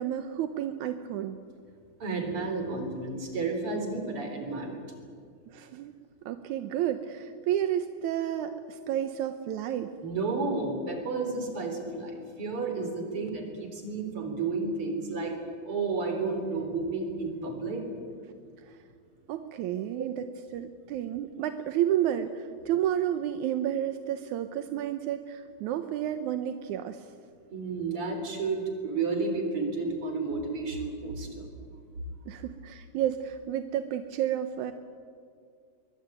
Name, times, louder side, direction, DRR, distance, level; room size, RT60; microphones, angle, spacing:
voice 1, 0.0-1.4 5.5-5.9 6.3-9.9 18.6-18.8 19.3-20.2 20.5-27.1 32.3-34.7, right 11 dB, 75° right, 9 dB, 1.9 m, -31 dB
voice 2, 2.0-4.8 10.0-15.4 15.6-17.8 27.5-31.5, right 3 dB, 35° right, 5 dB, 4.3 m, -31 dB
22.5 x 22.0 x 9.1 m, 2.3 s
omnidirectional pair, 4.3 m